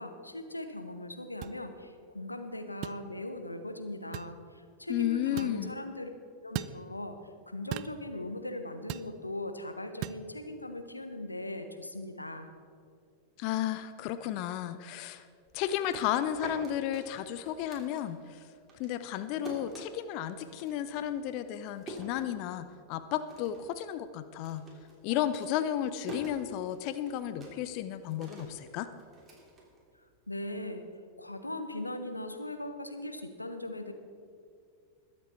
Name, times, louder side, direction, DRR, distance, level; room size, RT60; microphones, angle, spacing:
voice 1, 0.0-6.1 6.4-7.2 7.5-12.5 30.3-30.8 31.2-33.9, left 1 dB, 85° left, 7 dB, 1.0 m, -39 dB
sound 1, 1.4-1.6 2.8-3.0 4.1-4.3 5.4-5.6 6.5-6.8 7.7-8.0 8.9-9.1 10.0-10.2, right 15 dB, 45° right, 0.4 m, -37 dB
voice 2, 4.9-5.8 13.4-15.3 15.5-18.4 18.8-24.7 25.0-28.9, left 11 dB, 45° left, 12 dB, 0.6 m, -33 dB
sound 2, 15.5-18.4 18.7-22.8 23.1-23.8 24.0-30.3, right 1 dB, 20° right, 3.1 m, -47 dB
21.0 x 7.7 x 4.3 m, 2.2 s
figure-of-eight pair, 90°, 0 cm